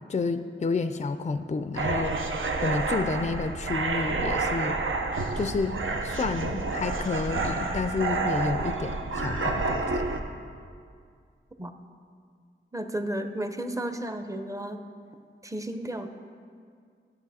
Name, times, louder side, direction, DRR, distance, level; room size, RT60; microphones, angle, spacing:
voice 1, 0.1-2.2 2.6-4.8 5.4-5.8 6.0-10.0, left 4 dB, 35° left, 10 dB, 0.4 m, -30 dB
sound 1, 1.8-10.2, right 3 dB, 70° right, 0.7 m, -29 dB
voice 2, 12.7-14.8 15.4-16.1, right 1 dB, 15° right, 7 dB, 0.6 m, -33 dB
11.0 x 6.8 x 4.1 m, 2.2 s
wide cardioid pair, 55°, 21 cm